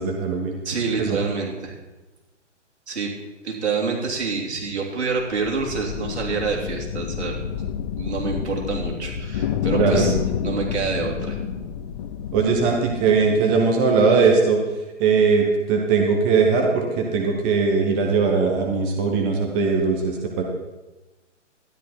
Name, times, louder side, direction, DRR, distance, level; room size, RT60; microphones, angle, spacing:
voice 1, 0.0-0.6 1.0-1.2 9.8-10.0 12.3-14.6 15.0-20.4, right 5 dB, 10° right, 1 dB, 0.4 m, -20 dB
voice 2, 0.6-1.7 2.9-3.1 3.4-7.4 8.0-10.2 10.4-11.4, right 5 dB, 65° right, -1 dB, 3.3 m, -27 dB
sound 1, 5.2-13.6, left 8 dB, 25° left, 0.7 m, -28 dB
12.5 x 10.5 x 4.3 m, 1.1 s
figure-of-eight pair, 130°, 36 cm